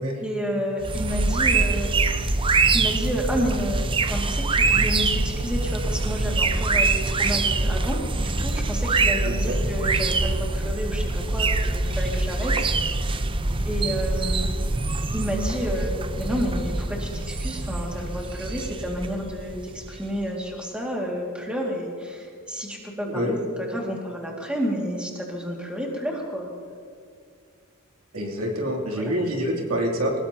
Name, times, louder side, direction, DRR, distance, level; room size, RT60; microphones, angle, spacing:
voice 1, 0.2-1.9 2.3-2.5 2.7-13.0 13.7-14.5 15.1-26.5 28.9-29.2, equal, 5° right, -2 dB, 2.2 m, -30 dB
sound 1, 0.8-20.2, right 3 dB, 25° right, 0.6 m, -24 dB
voice 2, 9.2-9.6 23.1-23.4 28.1-30.1, equal, 75° right, -1 dB, 3.0 m, -26 dB
23.0 x 19.5 x 2.9 m, 2.2 s
head